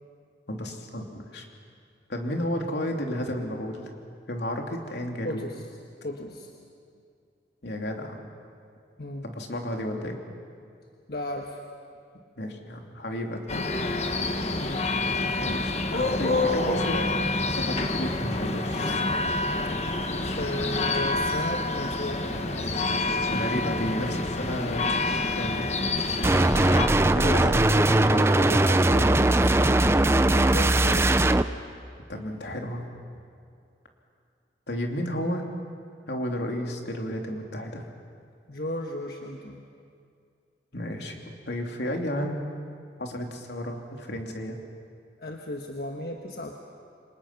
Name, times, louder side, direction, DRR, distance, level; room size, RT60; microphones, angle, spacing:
voice 1, 0.5-1.4 2.1-3.9 4.3-5.5 7.6-8.2 9.2-10.2 12.4-13.7 15.4-17.1 17.5-19.1 23.3-25.7 27.1-28.4 32.1-32.8 34.7-35.4 36.1-37.8 40.7-42.4 43.0-44.6, equal, 80° left, 2 dB, 2.9 m, -32 dB
voice 2, 5.2-5.7 6.0-6.5 9.0-9.3 11.1-11.6 14.5-14.9 20.3-22.8 27.2-29.8 30.3-31.3 38.5-39.6 45.2-46.6, left 1 dB, 60° left, 1 dB, 1.4 m, -35 dB
sound 1, 13.5-26.9, left 2 dB, 40° left, 1.3 m, -27 dB
sound 2, 26.2-31.4, right 2 dB, 15° right, 0.5 m, -20 dB
29.0 x 25.5 x 6.0 m, 2.4 s
head